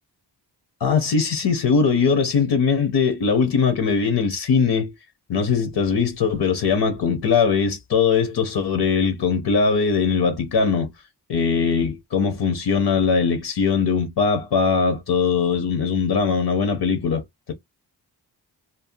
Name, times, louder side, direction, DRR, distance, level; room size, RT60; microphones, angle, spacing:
voice 1, 0.8-4.9 5.3-10.9 11.3-17.2, left 5 dB, 80° left, 0.8 m, -20 dB
2.6 x 2.1 x 2.6 m
wide cardioid pair, 180°, 39 cm